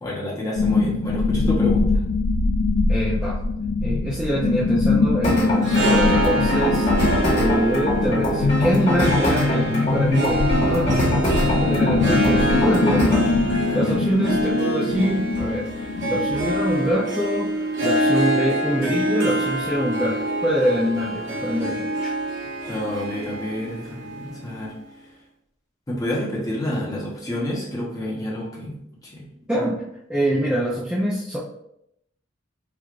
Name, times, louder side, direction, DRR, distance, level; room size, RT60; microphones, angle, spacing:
voice 1, 0.0-2.0 13.4-14.1 22.7-24.7 25.9-28.8 29.0-29.3 29.5-29.6, left 1 dB, 20° left, -4 dB, 0.9 m, -29 dB
sound 1, 0.6-17.0, left 4 dB, 70° left, 0.3 m, -23 dB
voice 2, 2.9-3.4 3.8-6.9 7.3-11.1 11.3-22.1 29.5-29.8 30.1-31.4, equal, 5° right, -8 dB, 0.4 m, -25 dB
sound 2, 5.2-13.3, equal, 35° left, 1.2 m, -24 dB
Harp, 5.5-24.9, right 1 dB, 65° right, 0.7 m, -26 dB
4.5 x 2.4 x 2.4 m, 0.78 s
head